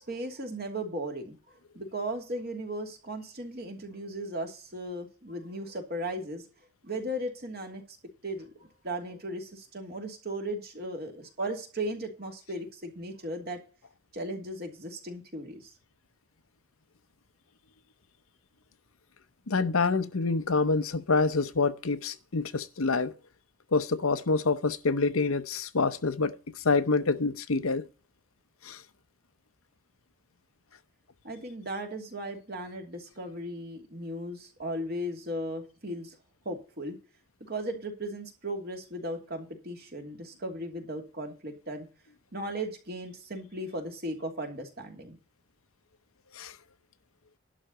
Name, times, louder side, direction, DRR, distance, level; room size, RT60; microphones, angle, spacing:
voice 1, 0.0-6.5 6.8-7.8 8.2-8.5 8.8-13.6 14.1-15.7 31.2-36.2 36.4-37.0 37.4-41.9 42.3-45.2, right 1 dB, 50° right, 2.8 m, -36 dB
voice 2, 19.5-23.1 23.7-27.8 28.6-28.8 46.3-46.6, left 4 dB, 85° left, 0.9 m, -27 dB
11.5 x 4.2 x 7.9 m
head